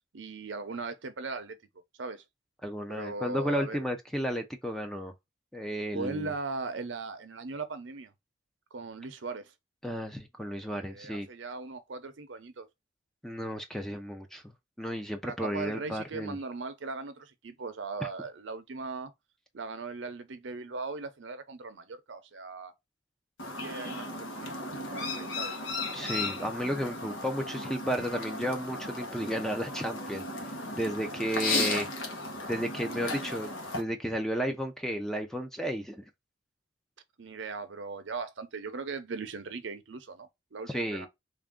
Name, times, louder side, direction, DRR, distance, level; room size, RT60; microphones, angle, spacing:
voice 1, 0.1-1.6 2.0-2.2 2.9-3.8 5.9-8.1 8.7-9.5 10.6-12.7 15.2-19.1 19.5-22.7 23.6-25.6 31.7-31.8 37.2-41.1, right 4 dB, 75° right, 0.7 m, -39 dB
voice 2, 2.6-5.1 5.5-6.3 9.8-11.3 13.2-14.4 14.8-16.4 18.0-18.1 25.9-30.2 30.7-31.9 32.5-36.0 40.7-41.1, equal, ahead, 0.5 m, -33 dB
Chirp tweet, 23.4-33.8, left 2 dB, 85° left, 1.1 m, -35 dB
3.4 x 2.6 x 3.6 m
head